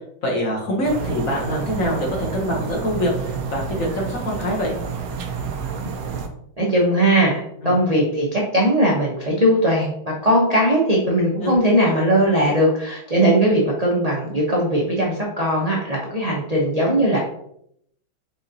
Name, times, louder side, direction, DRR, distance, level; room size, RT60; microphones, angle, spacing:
voice 1, 0.2-4.8 7.6-7.7 11.4-11.6, equal, 50° left, -2 dB, 1.1 m, -24 dB
sound 1, 0.8-6.3, right 5 dB, 85° right, 0.8 m, -29 dB
voice 2, 6.6-9.9 10.2-17.2, right 1 dB, 60° right, -5 dB, 0.4 m, -19 dB
4.8 x 3.8 x 2.7 m, 0.71 s
omnidirectional pair, 2.2 m